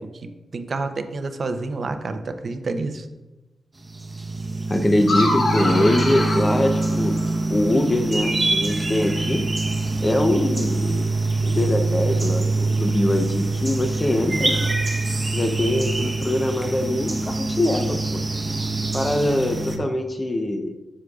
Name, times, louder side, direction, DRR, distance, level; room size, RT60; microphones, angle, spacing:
voice 1, 0.2-3.1, right 3 dB, 50° right, 8 dB, 0.6 m, -29 dB
sound 1, 3.8-19.8, right 2 dB, 25° right, 0.9 m, -24 dB
voice 2, 4.7-7.2 7.5-9.4 10.0-11.2 11.4-14.5 15.3-18.2 18.9-20.7, left 1 dB, 25° left, 5 dB, 0.7 m, -23 dB
sound 2, 5.0-7.5, left 2 dB, 70° left, 2.5 m, -26 dB
9.8 x 6.3 x 2.4 m, 1.1 s
cardioid pair, 95°, 0 cm